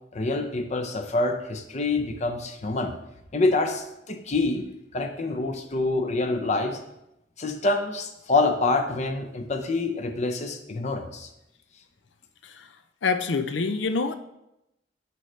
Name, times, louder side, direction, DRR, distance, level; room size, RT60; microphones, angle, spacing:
voice 1, 0.1-2.9 3.3-4.6 4.9-6.8 7.4-11.3, left 2 dB, 40° left, 6 dB, 0.6 m, -26 dB
voice 2, 13.0-14.1, left 4 dB, 85° left, 9 dB, 0.6 m, -26 dB
8.4 x 5.1 x 3.2 m, 0.86 s
head